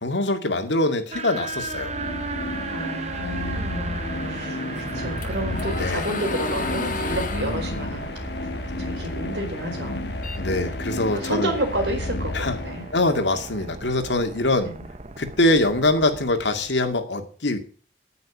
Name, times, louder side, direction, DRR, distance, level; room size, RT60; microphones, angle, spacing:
voice 1, 0.0-1.9 5.8-6.1 7.3-7.7 10.4-11.5 12.3-12.6 12.9-14.7 15.2-17.6, left 2 dB, 85° left, 6 dB, 2.2 m, -23 dB
sound 1, 1.1-17.0, right 3 dB, 40° right, 0.9 m, -37 dB
sound 2, 1.5-13.2, left 2 dB, 65° left, 1.2 m, -32 dB
voice 2, 2.7-4.0 4.3-8.1 8.8-10.0 11.1-12.9 14.6-14.8, right 1 dB, 70° right, 3 dB, 4.5 m, -30 dB
sound 3, 4.8-9.3 9.7-11.2, left 3 dB, 45° left, 1.9 m, -33 dB
9.4 x 9.0 x 8.7 m, 0.42 s
head